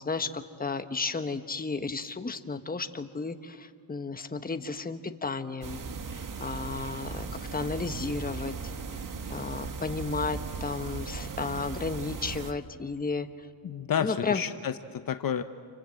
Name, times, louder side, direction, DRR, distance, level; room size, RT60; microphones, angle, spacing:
voice 1, 0.0-5.8 6.1-8.6 8.9-9.0 9.3-13.5 14.0-14.4, left 4 dB, 20° left, 8 dB, 1.3 m, -33 dB
sound 1, 5.6-12.5, right 5 dB, 45° right, 1.6 m, -37 dB
voice 2, 13.6-15.4, left 8 dB, 50° left, 9 dB, 1.0 m, -30 dB
29.0 x 24.5 x 7.8 m, 2.1 s
cardioid pair, 100°, 43 cm